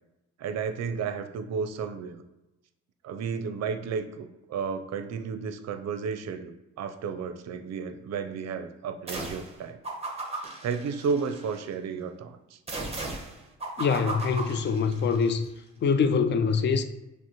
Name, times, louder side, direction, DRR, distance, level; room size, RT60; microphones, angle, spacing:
voice 1, 0.4-2.2 3.0-6.5 6.8-9.8 10.6-12.6, right 5 dB, 60° right, 0.5 m, -32 dB
sound 1, 9.1-9.5 9.8-11.6 12.7-15.3, right 2 dB, 20° right, 0.8 m, -36 dB
voice 2, 13.8-15.5 15.8-16.8, left 5 dB, 35° left, 0.4 m, -24 dB
5.9 x 2.1 x 2.9 m
cardioid pair, 90°, 30 cm